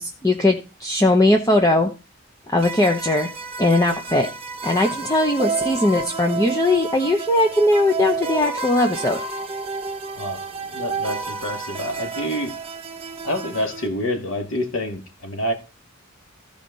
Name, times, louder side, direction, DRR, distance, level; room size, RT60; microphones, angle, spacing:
voice 1, 0.0-1.9 2.5-3.3 3.6-4.3 4.6-9.2, left 1 dB, 15° left, 0.9 m, -19 dB
sound 1, 2.6-13.9, right 4 dB, 25° right, 1.1 m, -31 dB
voice 2, 10.1-12.6 13.2-15.5, left 1 dB, 75° left, 2.3 m, -27 dB
15.0 x 5.0 x 4.1 m
head